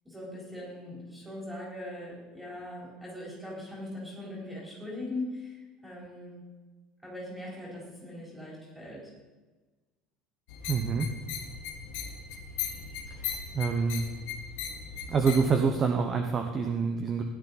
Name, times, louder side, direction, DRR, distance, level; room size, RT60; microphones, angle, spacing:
voice 1, 0.0-6.4 7.0-9.1, left 1 dB, 5° right, -5 dB, 4.2 m, -40 dB
sound 1, 10.5-15.6, left 7 dB, 70° left, 1.8 m, -38 dB
voice 2, 10.7-11.1 13.2-13.3 13.5-14.1 15.1-17.2, right 5 dB, 20° right, 4 dB, 0.9 m, -26 dB
16.5 x 11.0 x 4.2 m, 1.2 s
cardioid pair, 180°, 0 cm